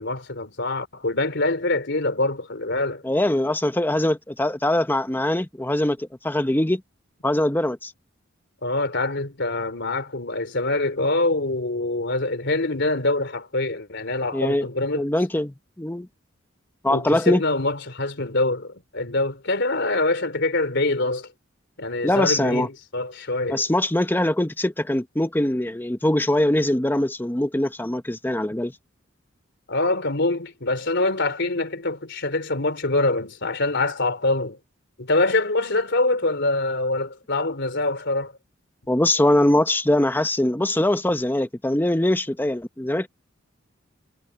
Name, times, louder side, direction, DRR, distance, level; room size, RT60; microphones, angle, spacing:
voice 1, 0.0-3.0 8.6-15.0 16.9-21.3 21.8-23.6 29.7-34.6 35.0-38.3, left 2 dB, 60° left, 3.7 m, -24 dB
voice 2, 3.0-6.8 7.2-7.9 14.3-14.7 15.0-16.1 16.8-17.4 22.0-22.7 23.5-28.7 38.9-43.1, left 1 dB, 10° left, 0.8 m, -22 dB
head